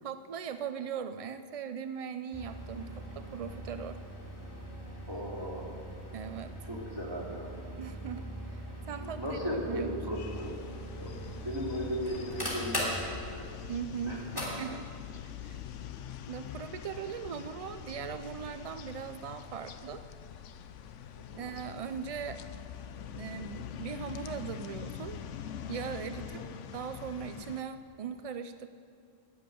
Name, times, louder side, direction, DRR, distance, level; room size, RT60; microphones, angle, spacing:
voice 1, 0.0-4.0 6.1-6.5 7.8-10.0 13.7-14.9 15.4-15.6 16.3-20.0 21.4-22.4 23.1-25.2 25.7-26.4 26.7-28.7, right 7 dB, 70° right, 10 dB, 0.3 m, -39 dB
sound 1, 2.3-14.5, equal, 20° left, 3.1 m, -40 dB
voice 2, 5.1-5.7 6.7-7.5 9.0-10.5 11.0-11.1 11.4-13.5 14.1-14.2 21.3-21.4 26.3-26.4, equal, 20° right, -3 dB, 2.7 m, -36 dB
sound 2, 10.1-27.6, left 9 dB, 85° left, 1.0 m, -44 dB
14.5 x 7.6 x 9.3 m, 2.3 s
omnidirectional pair, 1.2 m